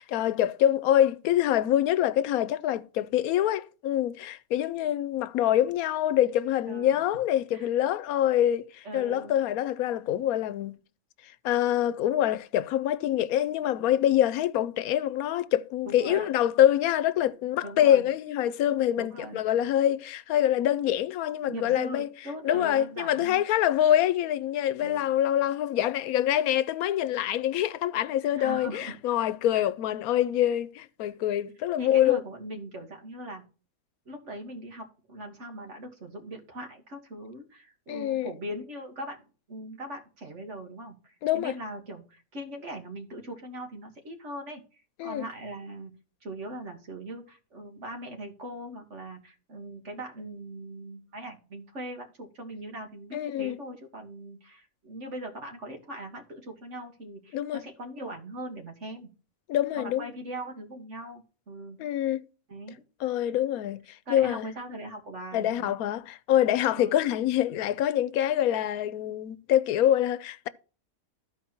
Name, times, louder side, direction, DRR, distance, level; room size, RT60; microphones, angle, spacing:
voice 1, 0.0-10.7 11.4-22.1 22.4-32.2 37.9-38.3 41.2-41.5 45.0-45.2 53.1-53.6 57.3-57.6 59.5-60.1 61.8-62.2 63.0-64.5 65.3-70.5, left 11 dB, 90° left, 1.1 m, -25 dB
voice 2, 6.7-7.0 7.5-7.7 8.8-9.4 15.9-16.3 17.6-18.1 19.0-19.4 21.5-23.4 24.8-25.0 28.4-29.0 29.5-29.7 31.8-33.4 34.1-44.6 45.0-45.9 46.2-59.1 59.8-61.8 62.5-62.8 64.1-65.7 66.7-67.0, right 1 dB, 55° right, 2.0 m, -40 dB
13.0 x 4.7 x 4.3 m
omnidirectional pair, 1.5 m